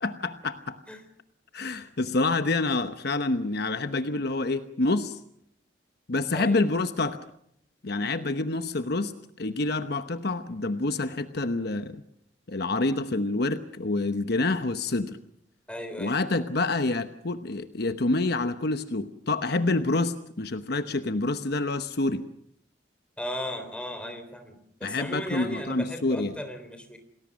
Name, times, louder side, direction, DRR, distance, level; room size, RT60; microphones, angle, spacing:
voice 1, 0.0-0.8 1.5-5.2 6.1-7.2 7.8-9.1 9.4-12.0 12.5-15.2 16.0-22.2 24.8-26.4, left 2 dB, 60° left, 9 dB, 1.0 m, -27 dB
voice 2, 15.7-16.2 23.2-27.0, equal, 5° left, 7 dB, 3.7 m, -36 dB
28.0 x 19.5 x 6.4 m, 0.71 s
head